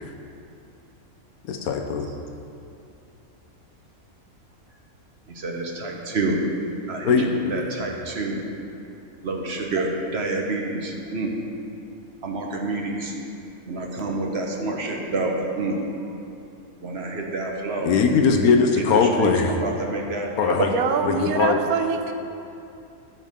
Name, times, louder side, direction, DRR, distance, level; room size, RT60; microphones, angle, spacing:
voice 1, 1.5-2.1 7.0-7.6 17.8-19.5 20.4-20.7 21.0-21.6, left 5 dB, 85° left, 3 dB, 1.3 m, -20 dB
voice 2, 5.4-6.4 6.9-8.4 9.2-11.3 12.2-13.1 13.7-15.8 16.8-17.9 19.0-19.3 19.6-20.7, right 3 dB, 50° right, 0 dB, 1.3 m, -28 dB
voice 3, 20.7-22.1, right 6 dB, 90° right, 6 dB, 1.2 m, -24 dB
15.0 x 6.2 x 3.7 m, 2.7 s
omnidirectional pair, 1.5 m